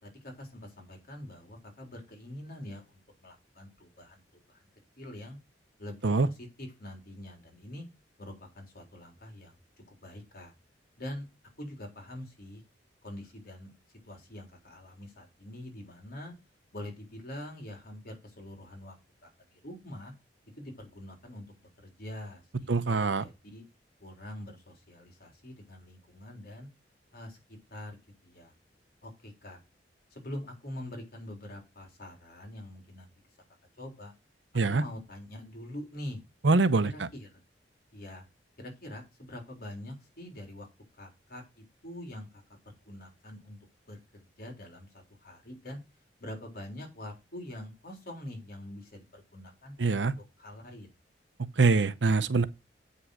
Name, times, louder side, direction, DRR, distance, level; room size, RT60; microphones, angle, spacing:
voice 1, 0.0-4.2 4.5-4.6 5.0-5.4 5.8-7.8 8.2-9.5 10.0-10.5 11.0-11.3 11.6-12.6 13.0-13.7 14.0-16.3 16.7-18.9 19.2-20.1 20.6-23.6 24.0-26.7 27.1-28.0 28.2-28.5 29.0-29.6 30.1-33.1 33.8-34.1 34.7-36.2 36.9-37.4 37.9-38.3 38.6-40.7 41.0-42.4 42.9-43.6 43.9-44.0 44.4-45.8 46.2-50.0 50.4-50.9, left 1 dB, 55° left, 3.7 m, -44 dB
voice 2, 22.7-23.2 34.5-34.8 36.4-37.1 49.8-50.1 51.6-52.4, right 3 dB, 80° right, 0.8 m, -24 dB
8.7 x 5.5 x 6.3 m
head